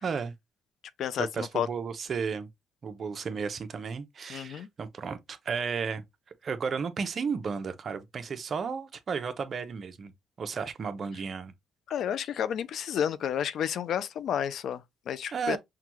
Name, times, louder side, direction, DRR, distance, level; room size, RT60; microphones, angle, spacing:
voice 1, 0.0-0.3 1.2-2.5 2.8-6.1 6.4-10.1 10.4-11.5 15.3-15.6, right 5 dB, 50° right, 0.7 m, -33 dB
voice 2, 1.0-1.7 4.3-4.7 11.9-15.6, left 9 dB, 70° left, 0.4 m, -31 dB
5.7 x 2.3 x 2.9 m
cardioid pair, 90°, 0 cm